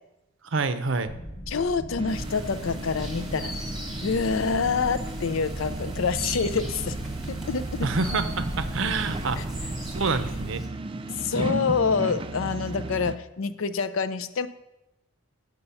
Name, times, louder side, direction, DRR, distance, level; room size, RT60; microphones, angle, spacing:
voice 1, 0.5-1.1 7.8-9.4 9.9-10.6, right 4 dB, 65° right, 11 dB, 0.6 m, -27 dB
sound 1, 1.0-10.5, equal, 35° left, 1.0 m, -38 dB
voice 2, 1.5-3.5 4.0-7.0 7.3-7.9 9.4-9.5 11.2-14.5, left 5 dB, 70° left, 12 dB, 0.5 m, -27 dB
sound 2, 2.0-13.2, right 2 dB, 25° right, 0.3 m, -34 dB
sound 3, 2.1-10.7, right 1 dB, ahead, 1.2 m, -43 dB
8.3 x 6.7 x 5.6 m, 0.93 s
head